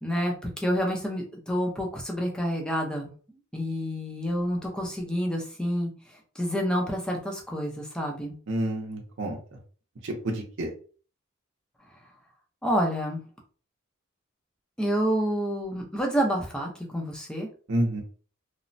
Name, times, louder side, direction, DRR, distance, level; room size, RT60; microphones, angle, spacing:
voice 1, 0.0-3.1 3.5-5.9 6.4-8.4 12.6-13.2 14.8-17.5, equal, 5° left, 0 dB, 0.6 m, -28 dB
voice 2, 8.5-9.4 10.0-10.7 17.7-18.0, right 1 dB, 65° right, 1 dB, 0.6 m, -29 dB
3.0 x 2.1 x 2.6 m, 0.40 s
head